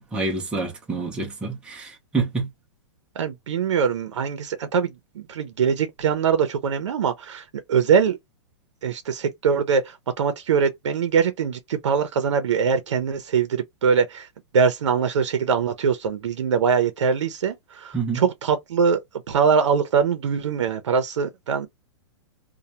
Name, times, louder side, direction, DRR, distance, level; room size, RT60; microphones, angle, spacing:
voice 1, 0.1-2.5 17.9-18.2, right 4 dB, 5° right, 0.6 m, -27 dB
voice 2, 3.2-8.2 8.8-14.3 14.5-19.0 19.3-21.7, right 6 dB, 90° right, 0.6 m, -22 dB
2.2 x 2.1 x 2.8 m
hypercardioid pair, 155°, 15 cm